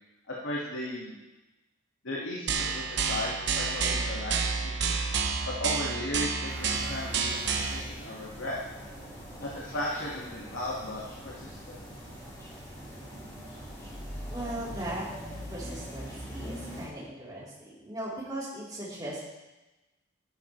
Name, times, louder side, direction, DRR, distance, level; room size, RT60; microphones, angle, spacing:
voice 1, 0.3-1.1 2.0-4.9 5.4-8.6 9.4-11.8, left 1 dB, 75° left, -5 dB, 1.9 m, -36 dB
sound 1, 2.5-7.8, right 5 dB, 60° right, 1.0 m, -29 dB
sound 2, 6.5-16.9, equal, 20° left, 4.4 m, -42 dB
voice 2, 14.3-15.0 15.5-19.2, right 1 dB, 20° right, -7 dB, 3.6 m, -38 dB
12.5 x 12.0 x 3.2 m, 1.1 s
head